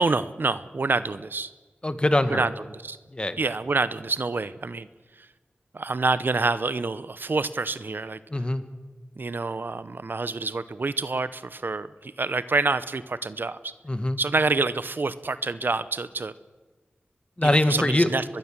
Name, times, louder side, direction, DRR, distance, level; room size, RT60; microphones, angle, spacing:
voice 1, 0.0-1.5 2.3-3.0 3.4-4.9 5.2-5.3 5.7-8.2 9.2-13.7 14.2-16.3 17.4-18.2, right 3 dB, 65° right, 15 dB, 0.8 m, -27 dB
voice 2, 1.8-2.4 3.1-3.4 8.3-8.6 13.8-14.2 17.4-18.1, left 1 dB, 25° left, 10 dB, 1.7 m, -23 dB
23.5 x 21.0 x 7.5 m, 1.3 s
wide cardioid pair, 65°, 4 cm